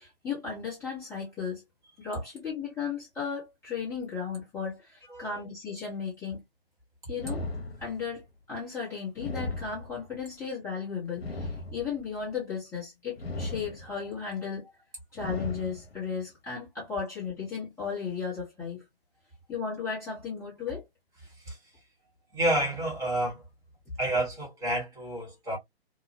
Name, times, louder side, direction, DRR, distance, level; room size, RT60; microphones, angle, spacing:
voice 1, 0.0-1.6 2.0-6.4 7.1-7.5 7.8-8.2 8.5-14.7 15.1-18.8 19.5-20.8, left 6 dB, 10° left, 1.0 m, -35 dB
sound 1, 7.2-8.2 9.1-10.2 11.1-12.2 13.2-14.2 15.1-16.2, left 2 dB, 80° left, 0.8 m, -37 dB
voice 2, 21.2-21.8 22.3-23.4 24.0-25.6, right 1 dB, 10° right, 1.2 m, -30 dB
2.8 x 2.2 x 2.7 m
figure-of-eight pair, 135°, 31 cm